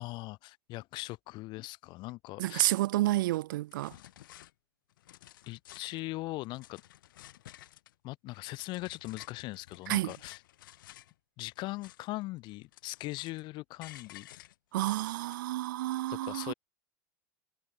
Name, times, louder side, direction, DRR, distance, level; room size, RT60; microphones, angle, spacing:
voice 1, 0.0-2.7 5.5-6.8 8.0-10.4 11.4-14.3 16.1-16.5, left 20 dB, 45° left, 2.0 m, -40 dB
voice 2, 2.4-3.9 9.9-10.1 14.7-16.5, right 16 dB, 80° right, 0.8 m, -30 dB
sound 1, 3.2-3.4 3.7-4.5 4.9-6.0 6.4-7.9 8.3-11.1 11.5-12.2 12.5-13.5 13.8-15.3, left 14 dB, 85° left, 1.2 m, -54 dB
supercardioid pair, 135°, 11 cm